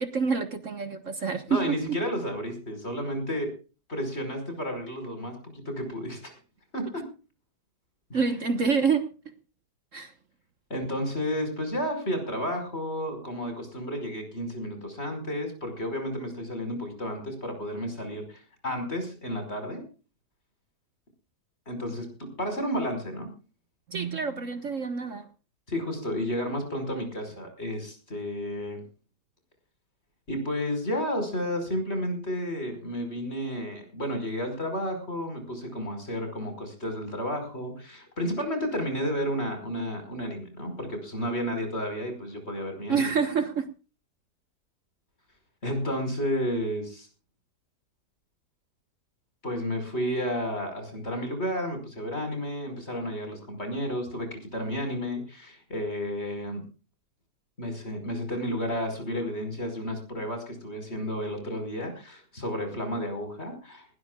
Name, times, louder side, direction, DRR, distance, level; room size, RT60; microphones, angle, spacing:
voice 1, 0.0-1.8 8.1-9.1 9.9-10.1 23.9-25.2 42.9-43.7, right 5 dB, 50° right, 8 dB, 1.6 m, -27 dB
voice 2, 1.5-3.5 3.9-6.4 6.7-7.1 8.1-8.2 10.7-19.8 21.7-23.3 25.7-28.8 30.3-43.1 45.6-47.1 49.4-56.6 57.6-63.9, equal, 40° left, 6 dB, 5.4 m, -32 dB
20.0 x 18.0 x 2.4 m, 0.34 s
omnidirectional pair, 1.8 m